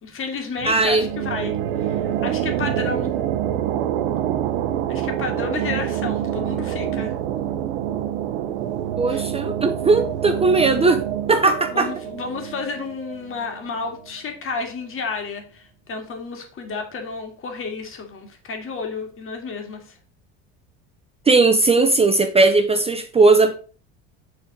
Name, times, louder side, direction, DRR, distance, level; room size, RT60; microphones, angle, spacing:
voice 1, 0.0-1.5 1.8-3.1 4.9-7.1 9.1-9.2 11.7-19.8, left 4 dB, 40° left, 2.1 m, -31 dB
voice 2, 0.6-1.1 9.0-11.0 11.3-11.9 21.3-23.5, right 3 dB, 20° right, 0.6 m, -17 dB
sound 1, 0.6-14.0, right 10 dB, 85° right, 0.8 m, -26 dB
6.8 x 3.9 x 5.2 m
supercardioid pair, 95°, 31 cm